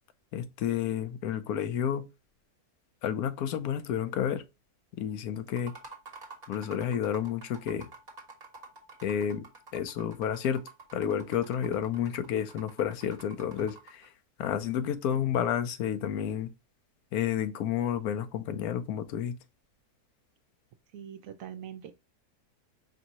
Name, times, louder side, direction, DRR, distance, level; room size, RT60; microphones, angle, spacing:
voice 1, 0.3-2.1 3.0-4.4 5.0-5.7 6.5-7.9 9.0-9.4 9.7-10.6 10.9-14.1 14.4-16.5 17.1-19.4, left 9 dB, 75° left, 1.1 m, -30 dB
sound 1, 5.5-14.1, right 4 dB, 25° right, 1.4 m, -49 dB
voice 2, 20.9-22.0, right 9 dB, 70° right, 0.9 m, -43 dB
5.1 x 2.7 x 2.9 m
omnidirectional pair, 1.7 m